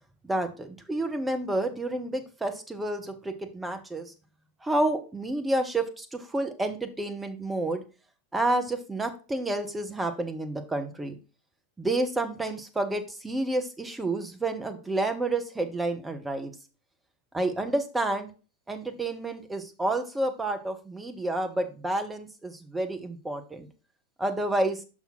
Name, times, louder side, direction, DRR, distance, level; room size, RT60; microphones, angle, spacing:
voice 1, 0.2-4.1 4.6-7.8 8.3-11.2 11.8-16.5 17.3-18.3 18.7-23.7 24.2-24.8, right 2 dB, 10° right, 6 dB, 1.0 m, -29 dB
6.0 x 5.6 x 4.3 m, 0.34 s
figure-of-eight pair, 90°, 0 cm